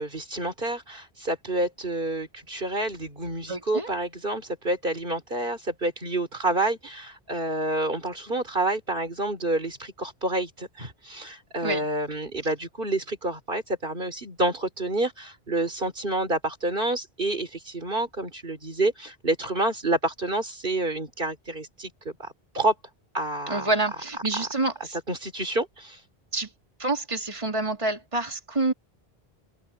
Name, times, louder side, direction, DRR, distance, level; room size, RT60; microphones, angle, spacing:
voice 1, 0.0-22.7 23.1-23.7 24.4-24.5 25.1-26.0, right 2 dB, 55° right, 3.9 m, -28 dB
voice 2, 3.5-3.9 11.6-11.9 23.5-25.0 26.3-26.5 26.8-28.7, right 2 dB, 30° right, 3.1 m, -27 dB
open air
omnidirectional pair, 1.0 m